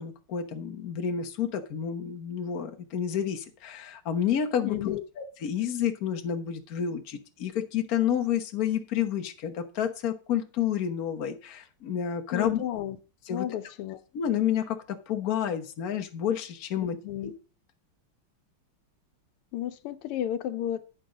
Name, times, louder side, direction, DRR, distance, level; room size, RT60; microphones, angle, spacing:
voice 1, 0.0-12.6 13.3-13.5 14.1-17.0 17.2-17.3, left 9 dB, 50° left, 1.4 m, -30 dB
voice 2, 4.6-5.0 12.3-13.0 13.3-14.0 17.0-17.3 19.5-20.8, left 11 dB, 90° left, 1.7 m, -32 dB
9.2 x 6.3 x 5.2 m
omnidirectional pair, 2.4 m